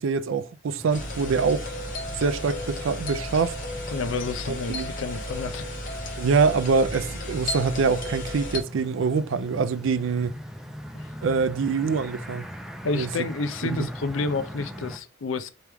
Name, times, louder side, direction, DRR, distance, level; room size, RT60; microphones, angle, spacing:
voice 1, 0.0-1.7 2.2-3.6 4.7-4.9 6.2-10.4 11.2-12.5 12.9-13.1 13.6-13.9, right 5 dB, 70° right, 0.4 m, -24 dB
sound 1, 0.8-15.0, equal, ahead, 0.3 m, -41 dB
sound 2, 0.9-8.6, left 1 dB, 40° left, 1.0 m, -34 dB
voice 2, 3.9-5.7 10.9-11.1 12.8-15.5, left 3 dB, 70° left, 0.5 m, -30 dB
4.6 x 3.1 x 3.4 m
head